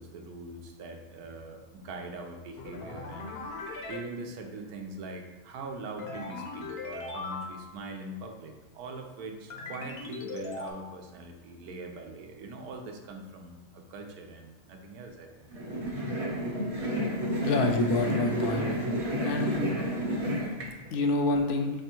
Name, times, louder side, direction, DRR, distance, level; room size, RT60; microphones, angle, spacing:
voice 1, 0.0-3.4 3.9-15.5 19.7-19.9 20.8-20.9, right 2 dB, 80° right, 3 dB, 1.1 m, -42 dB
sound 1, 2.6-4.0 6.0-7.8 9.5-10.7, left 3 dB, 55° left, 0.7 m, -39 dB
sound 2, 15.5-20.7, equal, 40° right, 0.5 m, -30 dB
voice 2, 17.4-18.7 19.2-19.6 20.9-21.7, left 2 dB, 80° left, 4 dB, 1.1 m, -27 dB
3.4 x 3.4 x 4.3 m, 1.1 s
omnidirectional pair, 1.6 m